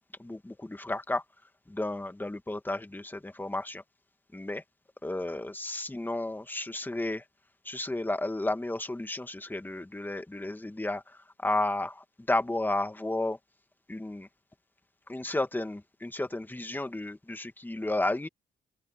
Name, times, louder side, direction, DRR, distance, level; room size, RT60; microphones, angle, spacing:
voice 1, 0.2-1.2 1.7-3.8 4.3-4.6 5.0-7.2 7.6-13.4 13.9-14.3 15.1-18.3, left 2 dB, 10° left, 1.9 m, -32 dB
open air
cardioid pair, 90°, 20 cm